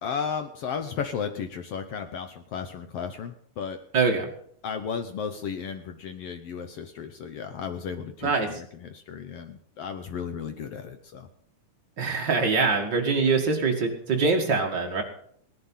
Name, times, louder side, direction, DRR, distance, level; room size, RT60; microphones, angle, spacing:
voice 1, 0.0-3.8 4.6-11.3 13.2-13.3, left 6 dB, 75° left, 8 dB, 1.4 m, -34 dB
voice 2, 3.9-4.3 8.2-8.6 12.0-15.0, right 4 dB, 35° right, 2 dB, 2.2 m, -24 dB
18.0 x 11.0 x 5.6 m, 0.63 s
omnidirectional pair, 3.9 m